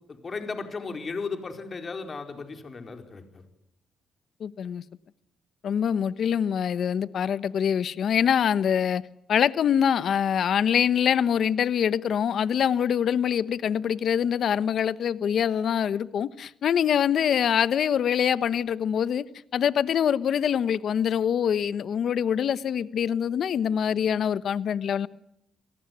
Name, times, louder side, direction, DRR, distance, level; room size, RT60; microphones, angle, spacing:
voice 1, 0.1-3.4, left 4 dB, 35° left, 4.4 m, -35 dB
voice 2, 4.4-4.8 5.6-9.0 9.3-19.2 19.5-25.1, left 8 dB, 60° left, 1.1 m, -24 dB
28.5 x 18.5 x 9.4 m
cardioid pair, 90°, 0 cm